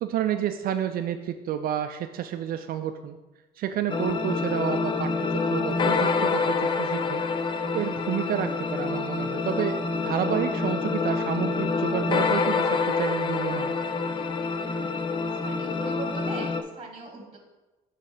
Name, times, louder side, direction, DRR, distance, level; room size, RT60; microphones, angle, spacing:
voice 1, 0.0-3.2 3.6-7.2 7.7-13.8, right 10 dB, 60° right, 8 dB, 0.4 m, -30 dB
sound 1, 3.9-16.6, left 4 dB, 30° left, 0.5 m, -27 dB
voice 2, 14.5-15.1 15.4-17.4, right 4 dB, 30° right, 2 dB, 1.3 m, -41 dB
8.1 x 3.2 x 5.0 m, 1.1 s
cardioid pair, 110°, 17 cm